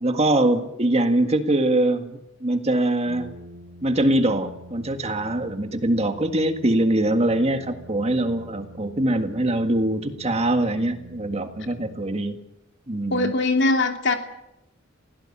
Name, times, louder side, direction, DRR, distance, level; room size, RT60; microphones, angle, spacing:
voice 1, 0.0-3.3 3.8-12.4 12.9-13.3, right 1 dB, 30° right, 7 dB, 1.8 m, -23 dB
Brass instrument, 3.0-12.5, equal, 55° right, 5.2 m, -45 dB
voice 2, 13.1-14.1, left 2 dB, 60° left, 4 dB, 2.9 m, -21 dB
21.5 x 17.0 x 8.8 m, 0.87 s
head